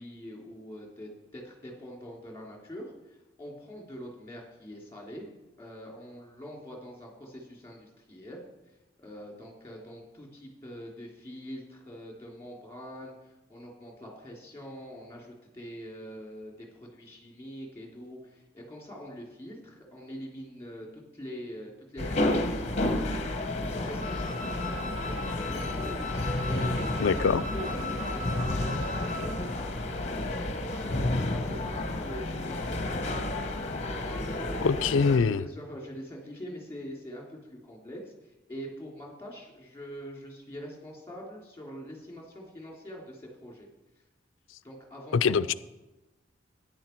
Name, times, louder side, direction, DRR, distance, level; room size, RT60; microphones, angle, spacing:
voice 1, 0.0-5.3 5.6-8.4 9.0-29.7 30.5-33.4 34.0-43.7 44.6-45.6, equal, 15° left, -1 dB, 3.2 m, -44 dB
sound 1, 22.0-35.2, left 1 dB, 35° left, 1.0 m, -31 dB
Wind instrument woodwind instrument, 24.0-29.4, left 2 dB, 45° right, 1.7 m, -39 dB
voice 2, 27.0-27.4 34.6-35.5 45.1-45.5, left 5 dB, 85° left, 17 dB, 0.4 m, -24 dB
13.5 x 10.0 x 4.6 m, 1.0 s
head